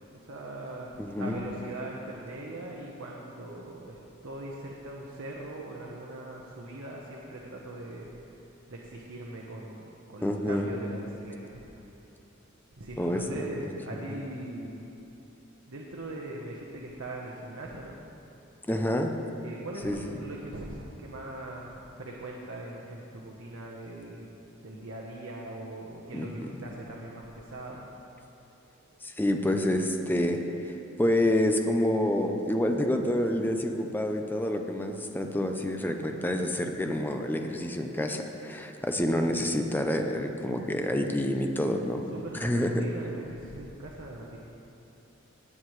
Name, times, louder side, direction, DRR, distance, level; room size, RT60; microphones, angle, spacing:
voice 1, 0.1-8.4 8.7-11.5 11.9-12.0 12.8-14.8 15.7-18.0 19.4-24.3 24.6-27.9 42.1-44.4, right 1 dB, 80° right, -3 dB, 1.0 m, -41 dB
voice 2, 1.0-1.4 10.2-10.7 13.0-13.4 18.7-19.1 19.8-20.1 26.1-26.5 29.0-30.4 31.0-42.1 42.3-42.8, left 1 dB, 10° left, 4 dB, 0.6 m, -28 dB
17.0 x 8.7 x 3.2 m, 3.0 s
head